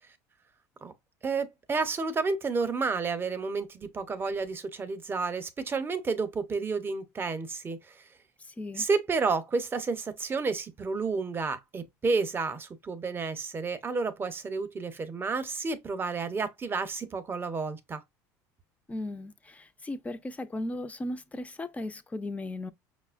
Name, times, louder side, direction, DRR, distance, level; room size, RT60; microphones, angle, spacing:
voice 1, 1.2-7.9 8.8-18.0, right 4 dB, 25° right, 0.7 m, -31 dB
voice 2, 8.4-8.9 18.9-22.7, left 1 dB, 15° left, 0.4 m, -36 dB
5.4 x 2.0 x 2.4 m
supercardioid pair, 95°, 9 cm